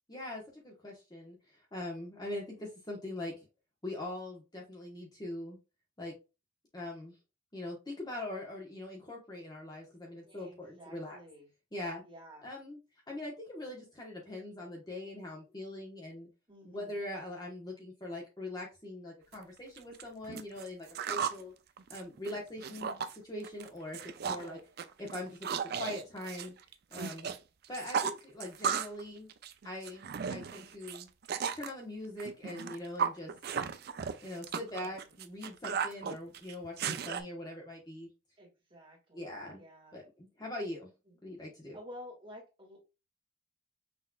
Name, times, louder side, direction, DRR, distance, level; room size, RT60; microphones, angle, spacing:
voice 1, 0.1-3.5 3.8-5.6 6.0-6.1 6.7-7.1 7.5-11.2 11.7-12.0 12.4-12.8 13.1-16.3 16.7-21.5 21.9-24.6 25.0-26.5 26.9-27.3 27.7-29.3 29.6-31.1 31.5-33.3 34.2-38.1 39.1-39.6 39.9-40.9 41.2-41.8, left 1 dB, 20° left, -2 dB, 1.1 m, -42 dB
voice 2, 10.2-11.5 12.0-12.5 16.5-17.0 24.3-24.6 34.7-35.1 38.4-40.0 41.1-41.2 41.7-42.8, equal, 25° right, -2 dB, 1.9 m, -52 dB
sound 1, 19.3-19.4 19.8-21.4 21.8-23.2 23.4-23.7 23.9-24.5 24.8-27.4 27.6-29.0 29.3-31.7 32.2-37.2, right 6 dB, 50° right, 0.4 m, -35 dB
6.0 x 3.1 x 2.3 m, 0.27 s
head